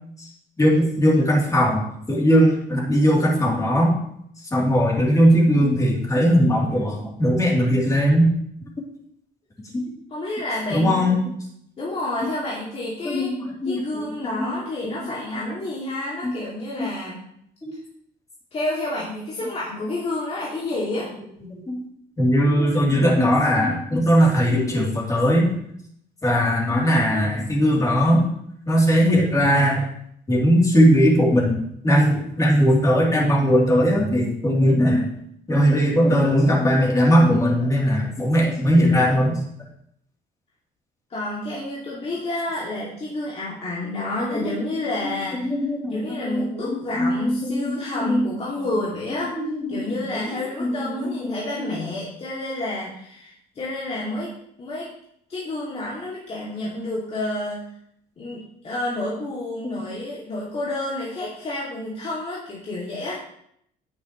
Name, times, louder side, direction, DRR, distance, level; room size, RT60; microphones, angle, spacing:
voice 1, 0.6-3.9 4.5-8.3 9.7-9.8 10.7-11.2 12.2-12.3 13.0-14.9 16.2-16.4 16.8-16.9 17.6-17.7 21.7-21.8 22.2-25.5 26.2-28.2 28.7-29.8 30.3-35.1 35.5-39.4 44.3-44.6 45.0-45.1 45.4-48.3 49.3-51.3 51.6-51.7 59.7-59.8, equal, 20° left, -3 dB, 3.2 m, -19 dB
voice 2, 10.1-11.2 11.8-13.3 13.7-17.2 18.5-21.1 41.1-45.5 45.9-49.3 49.7-54.9 55.3-57.6 58.2-63.2, left 1 dB, 35° left, -6 dB, 2.4 m, -29 dB
9.9 x 9.8 x 3.1 m, 0.72 s
cardioid pair, 110°, 17 cm